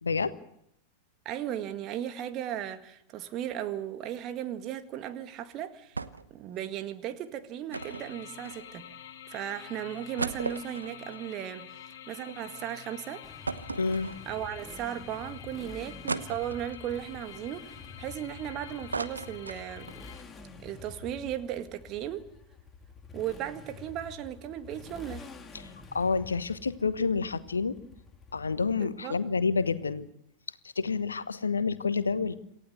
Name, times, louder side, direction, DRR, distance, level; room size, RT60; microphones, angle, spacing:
voice 1, 0.0-0.3 13.8-14.1 25.5-27.8 28.3-30.1 30.6-32.3, left 4 dB, 75° left, 1.2 m, -29 dB
voice 2, 1.3-6.0 6.3-8.8 9.3-11.7 12.1-13.3 14.3-19.9 20.6-22.3 23.1-25.3 28.8-29.2, right 11 dB, 35° right, 1.8 m, -36 dB
sound 1, 5.9-6.4 6.7-6.8 7.7-9.0 9.5-9.6 9.9-12.4 12.8-12.9 13.4-14.6 15.1-15.2 16.1-16.9 17.5-18.4 18.7-20.0 20.4-20.5 20.7-21.0, right 3 dB, 80° right, 1.0 m, -37 dB
sound 2, 7.7-20.2, left 10 dB, 55° left, 2.1 m, -48 dB
Motorcycle, 13.2-29.0, left 4 dB, 15° left, 2.3 m, -48 dB
27.5 x 15.5 x 8.0 m
figure-of-eight pair, 90°, 0 cm